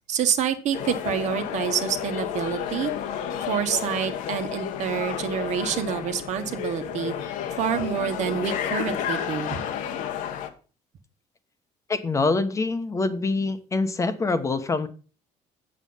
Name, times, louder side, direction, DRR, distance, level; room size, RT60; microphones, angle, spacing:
voice 1, 0.1-2.9 3.4-7.1 7.6-9.5, right 8 dB, 60° right, 8 dB, 1.4 m, -27 dB
sound 1, 0.7-10.5, left 9 dB, 80° left, 1.3 m, -31 dB
voice 2, 11.9-14.9, left 3 dB, 25° left, 10 dB, 1.0 m, -25 dB
7.9 x 7.4 x 5.5 m, 0.36 s
cardioid pair, 130°, 13 cm